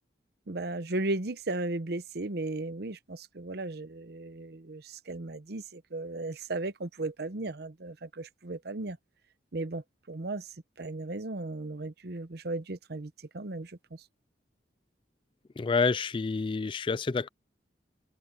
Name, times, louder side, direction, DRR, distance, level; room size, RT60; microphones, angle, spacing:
voice 1, 0.5-9.0 9.5-10.5 10.8-14.0, right 2 dB, 65° right, 0.9 m, -36 dB
voice 2, 15.6-17.3, left 4 dB, 30° left, 0.4 m, -28 dB
open air
head